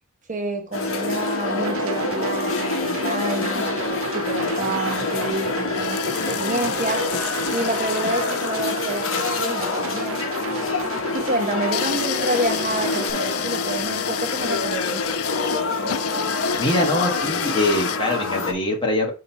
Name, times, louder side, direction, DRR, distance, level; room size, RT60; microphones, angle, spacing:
voice 1, 0.3-3.8 4.1-7.0 7.5-10.2 10.6-10.9 11.1-15.0, right 2 dB, 35° right, 1.2 m, -28 dB
sound 1, 0.7-18.5, left 3 dB, 60° left, 1.1 m, -26 dB
sound 2, 1.6-13.1, right 3 dB, 70° right, 0.6 m, -33 dB
sound 3, 5.7-18.0, left 11 dB, 85° left, 0.4 m, -32 dB
voice 2, 16.6-19.1, left 1 dB, 20° left, 1.3 m, -23 dB
6.2 x 3.0 x 5.4 m
head